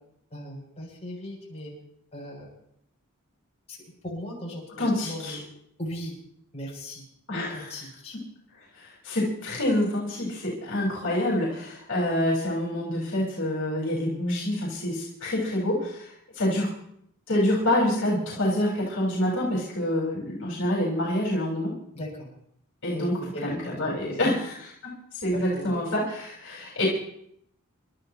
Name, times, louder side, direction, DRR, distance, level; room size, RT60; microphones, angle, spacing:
voice 1, 0.3-1.7 2.1-2.5 3.7-3.8 4.0-5.4 5.8-6.1 6.5-7.0 7.3-8.2 21.9-22.3 22.9-24.4 25.5-25.7, equal, 30° left, -4 dB, 7.3 m, -37 dB
voice 2, 4.8-5.4 7.3-7.6 8.8-16.7 17.3-21.7 22.8-23.1 23.4-26.9, left 1 dB, 60° left, -4 dB, 4.8 m, -27 dB
30.0 x 12.5 x 3.0 m, 0.71 s
head